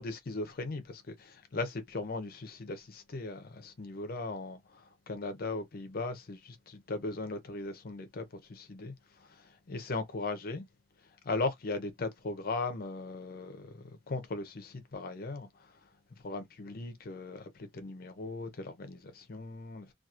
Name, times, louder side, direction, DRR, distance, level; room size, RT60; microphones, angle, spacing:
voice 1, 0.0-10.6 11.2-15.7 16.2-19.9, left 3 dB, 55° left, 0.6 m, -38 dB
2.8 x 2.3 x 2.3 m
head